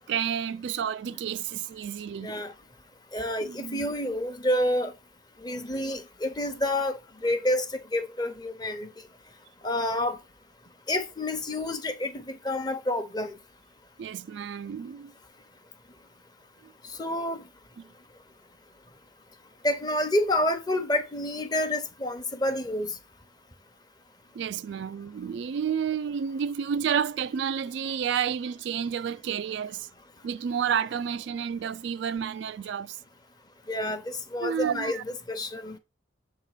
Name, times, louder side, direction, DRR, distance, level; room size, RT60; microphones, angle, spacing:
voice 1, 0.1-2.4 3.4-3.9 14.0-15.1 16.6-16.7 17.8-17.9 24.3-29.9 30.2-33.0 34.4-35.0, right 7 dB, 60° right, 0.3 m, -30 dB
voice 2, 2.2-2.5 3.1-4.9 5.4-8.9 9.6-10.2 10.9-13.3 17.0-17.4 19.6-23.0 33.7-35.0 35.3-35.8, left 1 dB, 20° left, 0.9 m, -28 dB
7.3 x 3.7 x 4.9 m
head